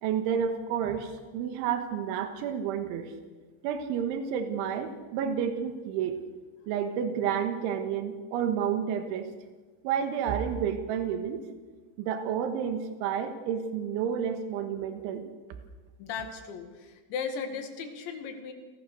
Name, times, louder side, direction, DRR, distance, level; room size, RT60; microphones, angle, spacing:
voice 1, 0.0-3.1 3.6-6.2 6.7-9.3 9.8-11.4 12.0-15.3, right 8 dB, 90° right, 7 dB, 3.8 m, -30 dB
voice 2, 16.0-18.5, left 6 dB, 75° left, 6 dB, 4.4 m, -36 dB
28.5 x 19.5 x 6.8 m, 1.4 s
omnidirectional pair, 5.4 m